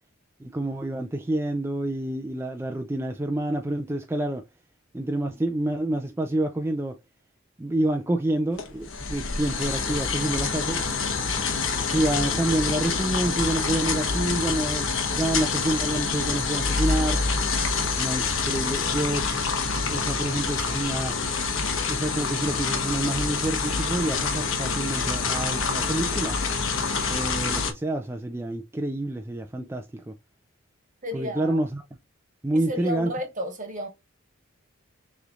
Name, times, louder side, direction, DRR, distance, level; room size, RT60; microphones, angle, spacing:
voice 1, 0.4-4.4 4.9-7.0 7.6-10.9 11.9-17.2 18.0-19.3 19.7-21.2 21.8-26.4 27.1-30.2 31.1-31.8 32.4-33.1, right 1 dB, 10° right, 0.4 m, -28 dB
sound 1, 8.6-27.7, left 4 dB, 65° left, 1.1 m, -26 dB
voice 2, 31.0-31.6 32.7-33.9, left 1 dB, 40° right, 1.3 m, -32 dB
6.5 x 3.2 x 2.4 m
head